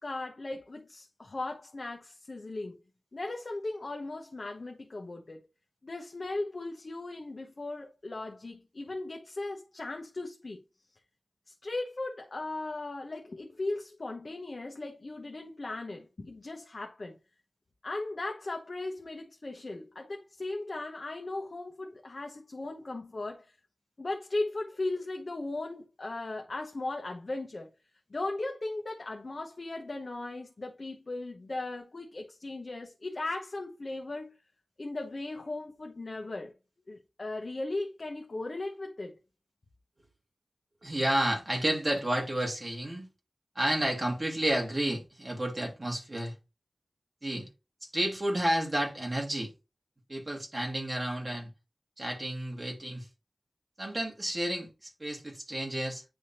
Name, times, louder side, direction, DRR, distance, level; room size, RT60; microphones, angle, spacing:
voice 1, 0.0-2.8 3.1-5.4 5.8-10.6 11.5-17.2 17.8-23.5 24.0-27.7 28.1-34.3 34.8-36.5 36.9-39.2, left 2 dB, 55° left, 0.9 m, -37 dB
voice 2, 40.8-43.1 43.6-46.3 47.2-47.5 47.8-49.5 50.1-51.5 52.0-53.1 53.8-56.0, right 1 dB, 30° right, 2.4 m, -31 dB
9.7 x 3.5 x 2.9 m
wide cardioid pair, 80°, 0 cm